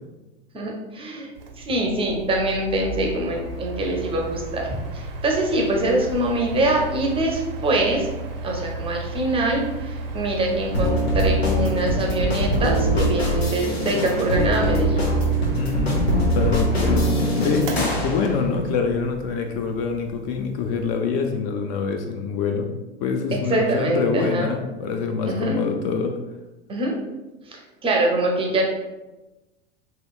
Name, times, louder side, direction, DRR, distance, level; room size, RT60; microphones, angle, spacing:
voice 1, 0.5-1.3 1.6-8.1 8.4-15.0 23.3-24.5 25.2-25.6 26.7-27.0 27.5-28.6, right 1 dB, 20° right, 0 dB, 0.5 m, -24 dB
Mechanical fan, 1.4-21.0, right 1 dB, 65° right, 0.5 m, -34 dB
sound 1, 10.7-17.9, right 1 dB, 90° left, 0.7 m, -22 dB
sound 2, 14.0-14.9 17.8-18.8, left 2 dB, 30° left, 1.3 m, -31 dB
voice 2, 15.6-22.7 23.0-26.1, left 5 dB, 45° left, 4 dB, 0.4 m, -25 dB
2.9 x 2.8 x 2.3 m, 1.1 s
hypercardioid pair, 90°, 30 cm